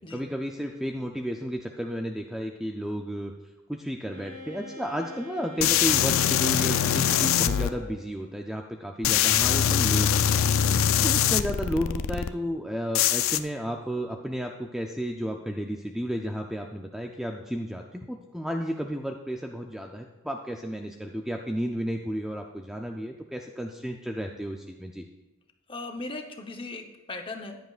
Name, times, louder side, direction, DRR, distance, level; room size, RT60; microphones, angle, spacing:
voice 1, 0.1-3.3 3.7-10.5 11.0-25.0, equal, ahead, 2 dB, 0.4 m, -32 dB
Wind instrument woodwind instrument, 4.0-8.1, left 1 dB, 45° right, 3.0 m, -43 dB
sound 1, 5.6-7.7 9.0-12.3 12.9-13.4, left 9 dB, 70° left, 0.4 m, -23 dB
voice 2, 10.7-11.0 25.7-27.6, left 2 dB, 25° left, 4 dB, 0.9 m, -38 dB
14.5 x 10.0 x 2.4 m, 1.1 s
head